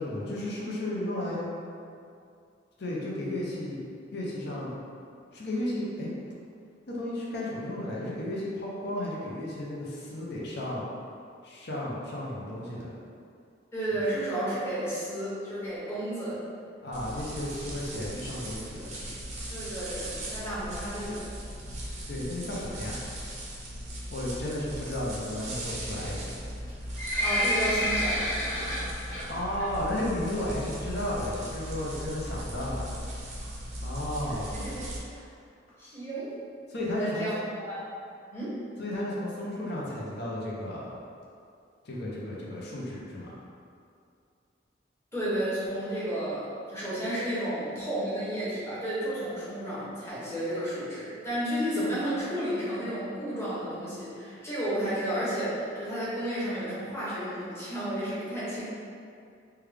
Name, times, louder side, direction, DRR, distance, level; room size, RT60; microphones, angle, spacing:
voice 1, 0.0-1.5 2.8-3.9 4.1-4.8 5.3-6.1 6.9-10.9 11.4-12.9 16.8-19.1 22.1-23.0 24.1-26.4 29.3-32.9 33.8-34.5 36.7-37.3 38.8-40.9 41.8-43.3, left 1 dB, 60° left, -5 dB, 0.6 m, -33 dB
voice 2, 13.7-16.4 19.5-21.3 27.2-28.3 28.6-28.9 34.3-35.2 35.8-36.4 36.9-37.4 37.7-37.8 38.3-38.6 45.1-58.6, right 1 dB, 15° left, -10 dB, 1.0 m, -32 dB
sound 1, 16.9-35.0, equal, 40° right, 0.5 m, -38 dB
Livestock farm animals working animals, 26.6-29.2 29.6-29.9 30.2-30.3 31.0-31.1 31.3-31.4 31.6-31.7 32.2-32.5 33.1-33.2 33.4-33.5 33.7-33.8 34.0-34.1 34.6-34.7 35.1-35.2 35.7-35.8, left 1 dB, 90° left, 1.1 m, -29 dB
3.3 x 2.3 x 3.3 m, 2.4 s
head